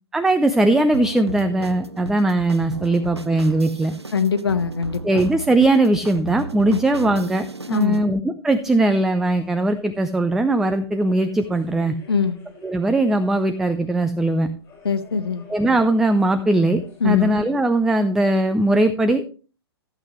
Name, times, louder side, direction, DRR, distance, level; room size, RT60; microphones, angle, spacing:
voice 1, 0.1-3.9 5.0-11.9 12.6-14.5 15.5-19.3, right 2 dB, 5° right, 9 dB, 0.4 m, -20 dB
sound 1, 0.9-8.1, right 3 dB, 90° right, 0.6 m, -35 dB
voice 2, 4.1-5.2 7.7-8.0 12.1-12.4 14.8-15.4 17.0-17.3, left 6 dB, 70° left, 10 dB, 1.2 m, -22 dB
mass in croatian cathedral, 8.5-17.5, left 4 dB, 15° left, 5.3 m, -49 dB
15.0 x 8.1 x 3.1 m, 0.37 s
figure-of-eight pair, 115°, 13 cm